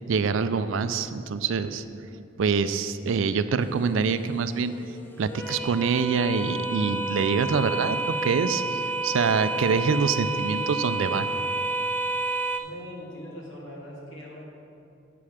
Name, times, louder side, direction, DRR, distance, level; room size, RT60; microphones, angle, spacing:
voice 1, 0.1-1.8 2.4-4.7 5.2-11.3, right 5 dB, 70° right, 12 dB, 0.4 m, -25 dB
sound 1, 3.6-12.6, right 2 dB, 10° left, 0.4 m, -30 dB
voice 2, 12.6-14.5, equal, 80° left, -4 dB, 2.0 m, -41 dB
7.7 x 4.9 x 7.2 m, 2.6 s
head